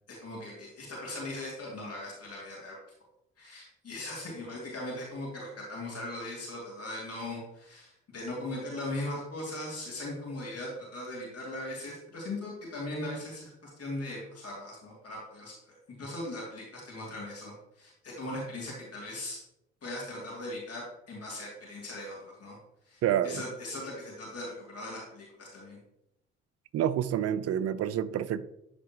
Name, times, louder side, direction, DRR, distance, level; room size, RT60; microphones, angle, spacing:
voice 1, 0.1-2.7 3.4-19.4 19.8-22.6 22.9-25.8, left 1 dB, 45° left, 2.8 m, -39 dB
voice 2, 23.0-23.4 26.7-28.4, right 10 dB, 45° right, 0.6 m, -28 dB
12.0 x 4.3 x 3.0 m
figure-of-eight pair, 45°, 34 cm